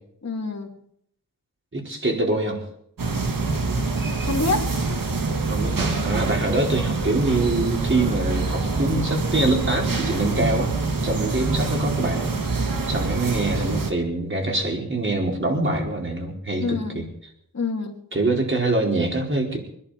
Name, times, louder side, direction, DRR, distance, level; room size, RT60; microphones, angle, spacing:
voice 1, 0.2-0.9 4.3-4.7 16.6-17.1 17.5-18.0, left 3 dB, 55° left, 1 dB, 2.5 m, -27 dB
voice 2, 1.7-2.6 5.5-10.7 11.0-12.4 12.9-17.1 18.1-19.6, right 2 dB, 35° right, 0 dB, 4.8 m, -24 dB
sound 1, 3.0-13.9, right 3 dB, 85° right, 2.0 m, -25 dB
25.0 x 11.0 x 5.2 m, 0.70 s
wide cardioid pair, 85°, 33 cm